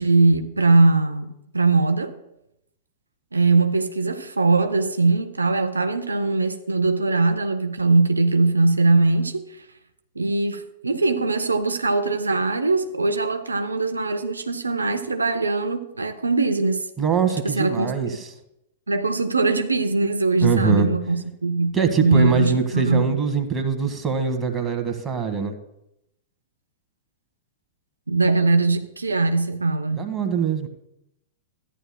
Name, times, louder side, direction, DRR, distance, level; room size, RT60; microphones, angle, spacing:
voice 1, 0.0-2.1 3.3-9.7 10.2-16.9 17.4-17.9 18.9-21.7 22.0-23.1 28.1-30.1, right 3 dB, 80° right, 0.6 m, -21 dB
voice 2, 17.0-18.3 20.4-20.9 21.7-25.5 30.0-30.7, right 6 dB, 15° right, 1.4 m, -23 dB
14.0 x 10.0 x 2.2 m
figure-of-eight pair, 100°, 0 cm